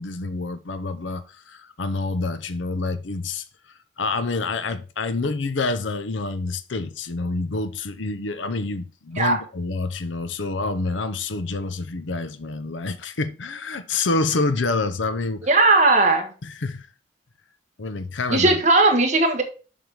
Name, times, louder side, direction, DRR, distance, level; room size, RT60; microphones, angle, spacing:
voice 1, 0.0-15.5 16.4-16.9 17.8-18.6, left 3 dB, 85° left, 0.7 m, -27 dB
voice 2, 15.5-16.3 18.3-19.4, right 2 dB, 40° right, 1.4 m, -17 dB
7.1 x 3.5 x 6.4 m
head